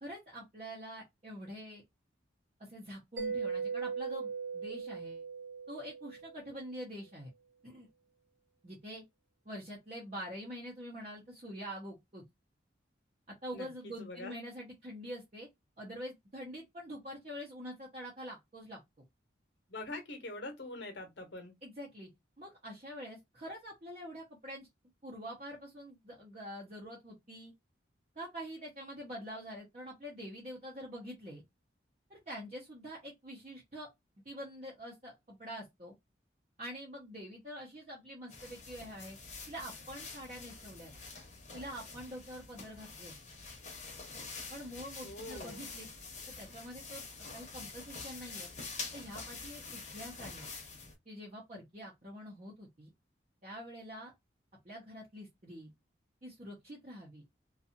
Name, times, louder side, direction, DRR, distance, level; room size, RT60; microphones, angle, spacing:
voice 1, 0.0-1.8 2.6-5.2 5.7-7.3 7.6-7.9 8.6-9.0 9.4-12.2 13.3-15.5 15.8-18.8 21.6-22.1 22.4-24.7 25.0-27.5 28.2-31.4 32.1-33.9 34.2-35.9 36.6-39.2 39.5-40.9 41.5-43.1 44.5-45.9 46.3-48.5 48.9-50.5 51.1-52.9 53.4-54.1 54.6-55.7 56.2-57.2, equal, 35° right, 0.7 m, -45 dB
Mallet percussion, 3.2-6.6, right 5 dB, 65° right, 0.9 m, -39 dB
voice 2, 14.0-14.3 19.7-21.5 45.0-45.6, left 2 dB, 65° left, 0.9 m, -44 dB
sound 1, 38.3-50.9, left 4 dB, 40° left, 0.9 m, -46 dB
2.6 x 2.4 x 2.7 m
head